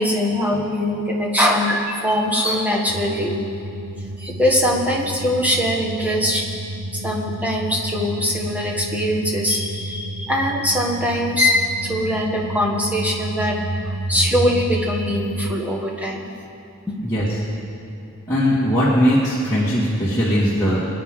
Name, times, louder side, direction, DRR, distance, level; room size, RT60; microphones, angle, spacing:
voice 1, 0.0-3.3 4.2-6.5 6.9-13.6 13.8-16.3 16.9-17.0, left 1 dB, 5° right, -2 dB, 1.6 m, -22 dB
sound 1, 2.9-15.5, right 1 dB, 75° right, 0.7 m, -31 dB
voice 2, 18.3-20.9, equal, 15° left, -10 dB, 2.1 m, -19 dB
23.5 x 9.6 x 3.8 m, 2.7 s
head